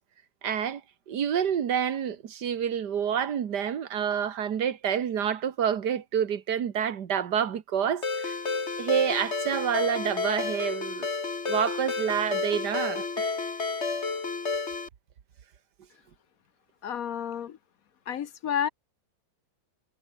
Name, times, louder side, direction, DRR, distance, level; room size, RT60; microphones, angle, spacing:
voice 1, 0.4-0.8 1.1-8.3 8.8-11.1 11.5-13.4, right 8 dB, 60° right, 1.9 m, -28 dB
Ringtone, 8.0-14.9, left 4 dB, 35° left, 2.4 m, -31 dB
voice 2, 16.8-17.6 18.1-18.7, left 8 dB, 60° left, 1.1 m, -30 dB
omnidirectional pair, 2.1 m